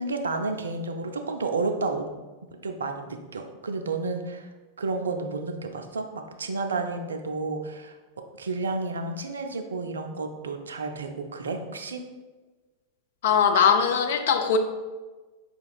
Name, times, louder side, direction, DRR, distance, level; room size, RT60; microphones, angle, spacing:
voice 1, 0.0-2.1 2.6-4.5 4.8-8.0 8.4-12.0, right 3 dB, 70° right, 5 dB, 0.4 m, -31 dB
voice 2, 13.2-14.6, left 7 dB, 55° left, 7 dB, 0.3 m, -21 dB
5.0 x 2.8 x 2.3 m, 1.3 s
figure-of-eight pair, 90°, 0 cm